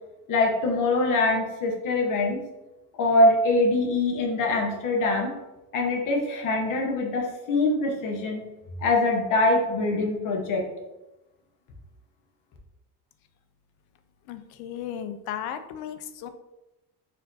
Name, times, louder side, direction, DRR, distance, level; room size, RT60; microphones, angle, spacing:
voice 1, 0.3-2.4 3.0-5.3 5.7-8.4 8.8-10.7, left 2 dB, 55° left, 1 dB, 1.1 m, -23 dB
voice 2, 14.3-16.3, left 9 dB, 85° left, 10 dB, 0.5 m, -35 dB
4.2 x 2.7 x 3.9 m, 0.98 s
cardioid pair, 145°, 37 cm